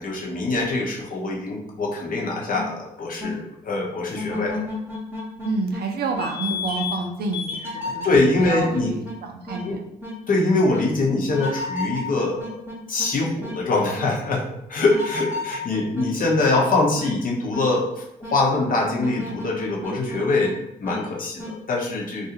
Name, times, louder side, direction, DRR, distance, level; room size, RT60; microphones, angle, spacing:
voice 1, 0.0-4.6 8.0-8.9 9.6-9.8 10.3-12.6 12.9-14.4 14.7-20.5 20.8-22.3, left 2 dB, 45° left, -2 dB, 0.8 m, -23 dB
sound 1, 2.5-2.7 3.2-3.3 4.2-5.8 6.1-7.0 7.3-9.2 9.5-9.6 10.0-10.2 10.7-10.8 11.3-13.1 13.4-13.6 14.0-14.1 14.8-16.7 17.0-17.1 17.5-17.7 18.2-18.3 18.9-20.5 20.8-21.0 21.4-21.5, left 3 dB, 10° right, 1.0 m, -32 dB
voice 2, 5.4-8.1 8.4-9.8, right 3 dB, 55° right, 4 dB, 0.5 m, -28 dB
2.5 x 2.3 x 2.9 m, 0.79 s
hypercardioid pair, 45°, 19 cm